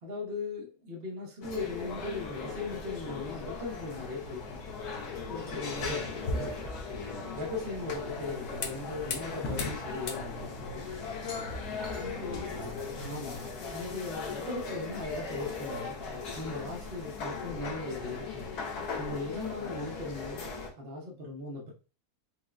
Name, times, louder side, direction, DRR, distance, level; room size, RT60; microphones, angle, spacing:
voice 1, 0.0-4.6 5.3-6.1 7.3-10.9 12.0-12.6 13.0-15.9 16.3-18.5 19.0-20.5 20.8-21.7, left 3 dB, 50° right, -2 dB, 0.9 m, -38 dB
sound 1, 1.4-20.7, left 4 dB, 85° left, 1.4 m, -39 dB
sound 2, 4.3-13.5, left 2 dB, 65° left, 0.8 m, -41 dB
voice 2, 5.7-7.4 12.1-12.8, equal, 65° right, -2 dB, 1.7 m, -42 dB
4.5 x 2.1 x 2.4 m, 0.35 s
omnidirectional pair, 1.6 m